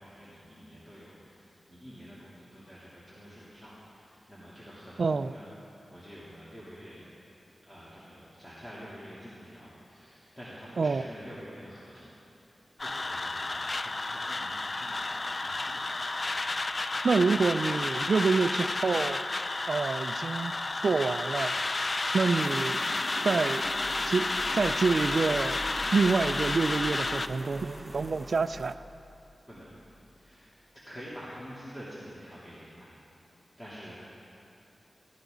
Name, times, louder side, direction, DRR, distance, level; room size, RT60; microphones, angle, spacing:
voice 1, 0.0-7.1 7.6-12.1 12.4-16.1 29.5-29.7 30.1-32.9 33.6-33.9, equal, 20° left, -10 dB, 3.1 m, -48 dB
voice 2, 5.0-5.3 10.8-11.0 17.0-19.3 19.7-20.5 20.8-21.5 22.1-22.8 23.2-23.7 24.0-25.6 25.9-28.8, right 4 dB, 70° right, 13 dB, 0.4 m, -27 dB
sound 1, 12.8-27.3, left 2 dB, 40° left, 0.4 m, -31 dB
sound 2, 22.3-28.7, right 1 dB, 10° right, 1.0 m, -44 dB
sound 3, 23.5-30.2, equal, 85° left, 3.6 m, -48 dB
17.5 x 15.0 x 3.9 m, 2.7 s
wide cardioid pair, 90°, 0 cm